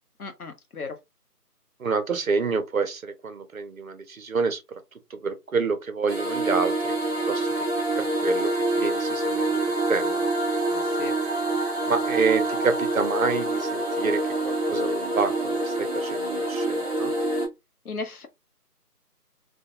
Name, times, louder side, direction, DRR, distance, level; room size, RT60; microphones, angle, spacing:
voice 1, 0.2-1.0 10.7-11.1 17.8-18.3, left 4 dB, 65° left, 0.8 m, -36 dB
voice 2, 1.8-4.8 5.1-6.9 7.3-7.5 8.0-10.3 11.9-17.1, right 5 dB, 60° right, 0.6 m, -28 dB
sound 1, 6.1-17.5, right 2 dB, 25° right, 0.9 m, -26 dB
2.3 x 2.2 x 2.8 m
figure-of-eight pair, 160°, 47 cm